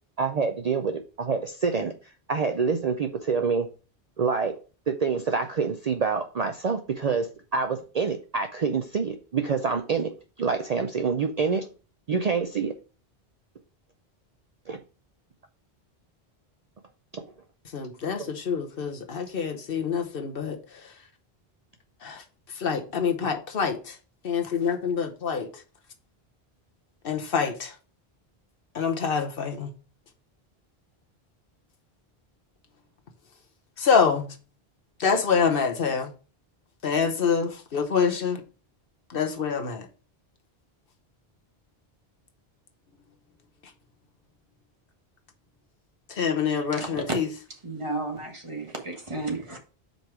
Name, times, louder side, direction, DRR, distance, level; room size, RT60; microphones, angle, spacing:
voice 1, 0.2-3.7 4.2-4.5 4.9-10.1 10.4-11.7 12.1-12.7 14.7-14.8 17.1-17.3 18.2-18.3, right 5 dB, 45° right, 0.6 m, -27 dB
voice 2, 17.7-20.6 20.8-20.9 22.0-22.2 22.6-24.0 24.2-25.5 27.0-27.7 28.7-29.7 33.8-34.3 35.0-36.1 36.8-38.4 39.1-39.9 46.1-47.3, left 6 dB, 65° left, 1.1 m, -26 dB
voice 3, 46.7-47.0 47.6-49.6, right 2 dB, 30° right, 1.4 m, -33 dB
5.3 x 4.5 x 4.7 m
omnidirectional pair, 1.0 m